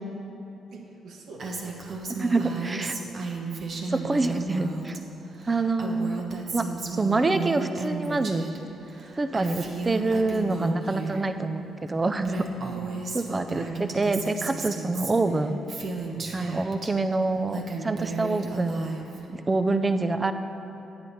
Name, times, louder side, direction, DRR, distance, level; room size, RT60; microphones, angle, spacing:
voice 1, 0.7-1.8 2.1-2.9 5.8-6.1 12.6-13.1 16.1-16.4, right 3 dB, 75° right, 0 dB, 1.3 m, -44 dB
Female speech woman speaking, 1.4-5.0 5.3-8.6 8.9-11.3 11.9-12.0 12.2-16.9 17.3-19.2, right 4 dB, 55° right, 1.1 m, -34 dB
voice 2, 2.2-2.9 3.9-4.9 5.5-6.2 6.5-8.4 9.2-12.5 13.1-15.6 16.3-18.9 19.3-20.3, right 3 dB, 25° right, 9 dB, 0.5 m, -26 dB
9.5 x 9.2 x 4.2 m, 3.0 s
cardioid pair, 90°, 0 cm